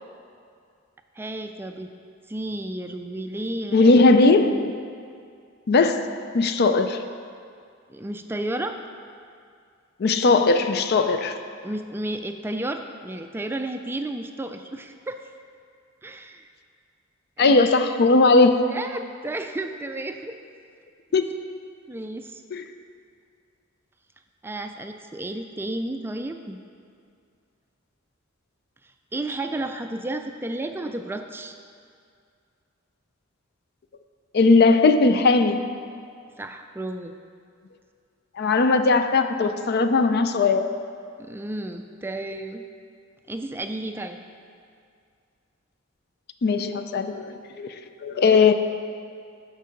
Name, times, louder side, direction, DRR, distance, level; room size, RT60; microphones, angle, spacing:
voice 1, 1.2-1.9 2.3-4.1 7.9-8.8 11.6-15.2 16.0-16.5 17.4-17.7 18.7-20.4 21.9-22.4 24.4-26.6 29.1-31.5 36.4-37.1 41.2-42.6 43.3-44.2, right 1 dB, 10° right, 6 dB, 0.3 m, -32 dB
voice 2, 3.7-4.7 5.7-6.0 6.3-7.0 10.0-11.3 17.4-18.5 21.1-21.4 22.5-22.6 34.3-35.6 38.4-40.7 46.4-47.7 48.0-48.5, left 3 dB, 50° left, 8 dB, 0.4 m, -18 dB
12.0 x 4.6 x 5.2 m, 2.3 s
head